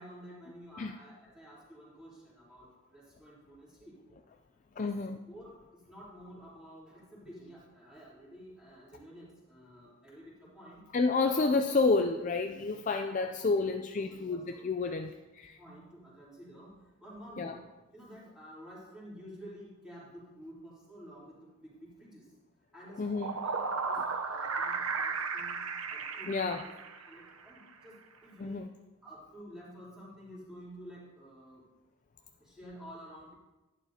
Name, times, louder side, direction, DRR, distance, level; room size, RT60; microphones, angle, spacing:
voice 1, 0.0-4.2 4.7-4.9 5.3-10.9 11.2-11.3 11.6-11.7 13.2-15.1 15.6-17.6 17.9-22.3 22.7-23.6 23.9-31.6 32.2-33.3, equal, 5° right, -9 dB, 3.5 m, -51 dB
voice 2, 4.8-5.2 10.9-15.1 15.4-15.6 17.4-17.5 23.0-23.3 24.5-24.6 26.3-26.6 28.4-28.7, left 3 dB, 35° left, 5 dB, 0.3 m, -30 dB
sound 1, 22.9-27.3, right 4 dB, 75° right, 0.8 m, -35 dB
11.5 x 11.0 x 2.8 m, 1.1 s
head